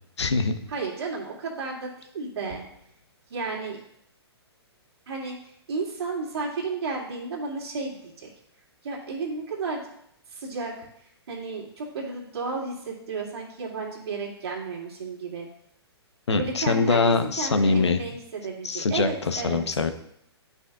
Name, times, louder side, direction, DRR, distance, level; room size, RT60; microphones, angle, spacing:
voice 1, 0.2-0.6 16.3-18.0 18.6-19.9, left 4 dB, 85° left, 9 dB, 0.8 m, -23 dB
voice 2, 0.7-2.6 3.3-3.8 5.1-5.4 5.7-8.3 8.8-9.8 10.3-10.9 11.3-15.5 16.3-19.6, right 4 dB, 65° right, -2 dB, 2.2 m, -33 dB
10.5 x 5.5 x 2.3 m, 0.74 s
hypercardioid pair, 130°, 14 cm